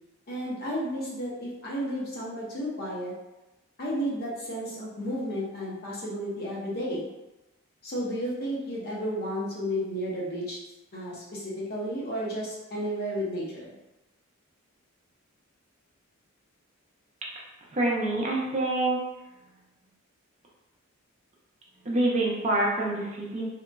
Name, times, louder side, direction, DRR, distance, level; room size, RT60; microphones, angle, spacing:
voice 1, 0.3-3.1 3.8-7.1 7.8-10.6 10.9-13.7, equal, 45° left, -5 dB, 0.7 m, -32 dB
voice 2, 17.7-19.0 21.9-23.5, right 2 dB, 30° right, -4 dB, 0.5 m, -26 dB
2.8 x 2.5 x 2.2 m, 1.0 s
head